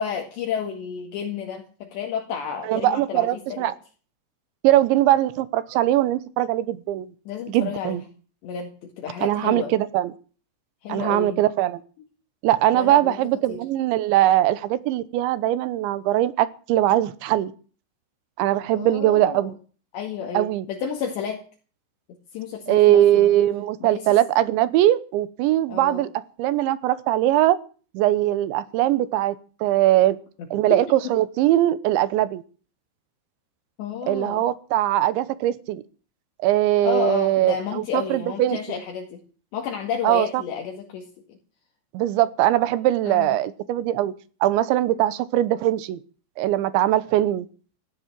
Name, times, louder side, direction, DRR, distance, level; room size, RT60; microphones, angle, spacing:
voice 1, 0.0-3.6 7.3-8.0 8.4-9.8 10.8-11.4 12.7-13.2 13.5-13.6 18.7-19.5 19.9-21.4 22.3-23.3 23.8-24.1 25.7-26.1 30.7-30.8 31.0-31.1 33.8-34.4 36.8-39.2 39.5-41.4 43.1-43.4, left 7 dB, 65° left, 1 dB, 4.0 m, -31 dB
voice 2, 2.7-3.7 4.6-7.1 7.5-8.0 9.2-10.1 10.9-11.8 12.4-17.5 18.4-19.5 20.3-20.7 22.7-26.1 26.4-27.6 27.9-29.4 29.6-30.2 30.5-32.4 34.1-35.8 36.4-38.6 40.0-40.4 41.9-44.1 44.4-46.0 46.4-47.5, right 14 dB, 75° right, 16 dB, 3.1 m, -21 dB
16.0 x 11.5 x 7.4 m, 0.39 s
omnidirectional pair, 5.7 m